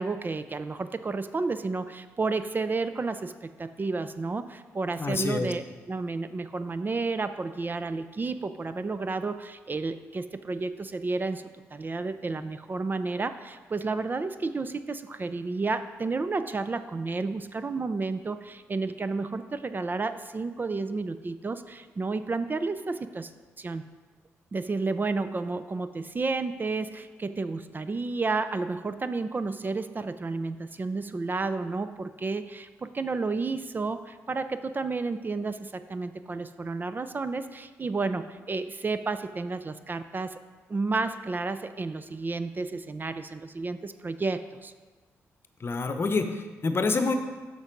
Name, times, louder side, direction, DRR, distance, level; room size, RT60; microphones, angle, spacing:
voice 1, 0.0-11.4 11.7-23.3 23.6-23.8 24.5-40.4 40.7-44.7, right 3 dB, 35° right, 11 dB, 0.4 m, -31 dB
voice 2, 5.0-5.5 45.6-47.1, left 3 dB, 45° left, 8 dB, 0.8 m, -27 dB
7.2 x 5.9 x 5.2 m, 1.4 s
supercardioid pair, 55°, 6 cm